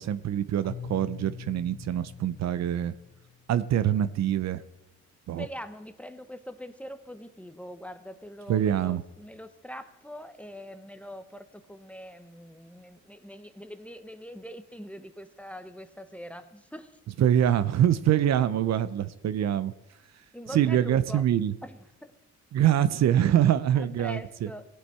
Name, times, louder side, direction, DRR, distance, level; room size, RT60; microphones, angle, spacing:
voice 1, 0.0-2.9 3.5-4.6 5.3-5.4 8.5-9.0 17.2-19.7 20.5-21.5 22.5-24.2, right 11 dB, 60° right, 14 dB, 0.6 m, -24 dB
Keyboard (musical), 0.6-3.6, left 7 dB, 20° left, 1.6 m, -43 dB
voice 2, 5.4-17.0 20.3-21.2 21.6-22.1 23.7-24.7, equal, 5° left, 10 dB, 0.8 m, -43 dB
18.0 x 8.1 x 4.3 m, 0.96 s
cardioid pair, 90°, 30 cm